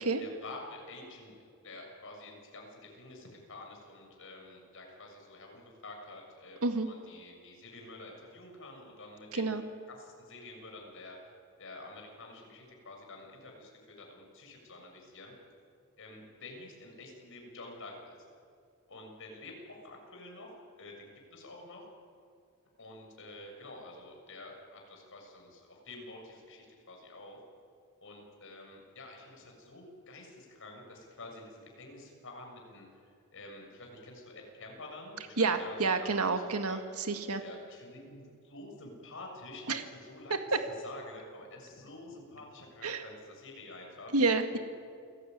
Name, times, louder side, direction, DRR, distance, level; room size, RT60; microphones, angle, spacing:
voice 1, 0.0-1.4 1.6-9.6 9.9-11.2 11.6-15.3 16.0-18.2 18.9-21.9 22.8-27.4 28.0-36.8 37.4-44.1 44.5-44.6, left 2 dB, 60° left, 1 dB, 7.0 m, -49 dB
voice 2, 35.4-37.4 39.7-39.8 42.8-43.0 44.1-44.6, right 3 dB, 90° right, 6 dB, 1.9 m, -29 dB
28.5 x 19.5 x 9.4 m, 2.3 s
head